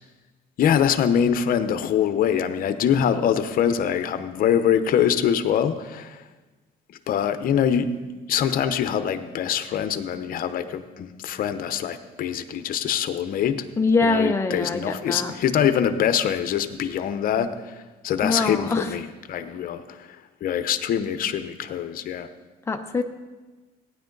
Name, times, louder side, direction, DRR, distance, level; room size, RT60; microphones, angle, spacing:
voice 1, 0.6-6.2 7.1-7.9 8.3-13.7 14.0-20.1 20.4-22.3, left 9 dB, 55° left, 10 dB, 0.8 m, -24 dB
voice 2, 13.8-15.3 18.2-18.9 22.7-23.0, left 3 dB, 15° left, 4 dB, 0.8 m, -23 dB
16.0 x 9.7 x 4.0 m, 1.2 s
cardioid pair, 110°, 17 cm